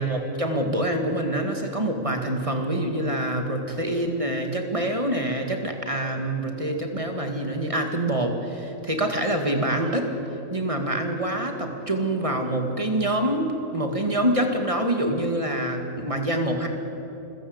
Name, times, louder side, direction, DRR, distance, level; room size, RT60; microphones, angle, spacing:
voice 1, 0.0-10.1 10.5-16.7, right 1 dB, 25° right, 4 dB, 2.1 m, -26 dB
27.0 x 16.0 x 8.1 m, 3.0 s
omnidirectional pair, 1.4 m